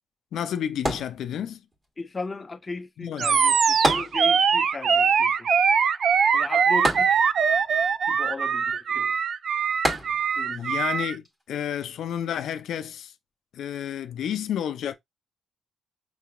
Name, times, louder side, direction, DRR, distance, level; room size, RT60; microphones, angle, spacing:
voice 1, 0.3-1.6 3.0-3.4 10.5-13.1 13.5-14.9, left 9 dB, 70° left, 0.5 m, -31 dB
sound 1, 0.8-1.7 3.8-4.7 5.0-5.1 6.8-7.7 9.8-10.6 11.2-11.3, equal, 20° right, 1.5 m, -28 dB
voice 2, 2.0-5.5 6.3-7.2 8.1-9.1 10.4-10.7, left 3 dB, 20° left, 0.5 m, -36 dB
Animal, 3.2-11.1, right 6 dB, 50° right, 0.4 m, -22 dB
5.9 x 2.9 x 2.3 m
cardioid pair, 145°, 0 cm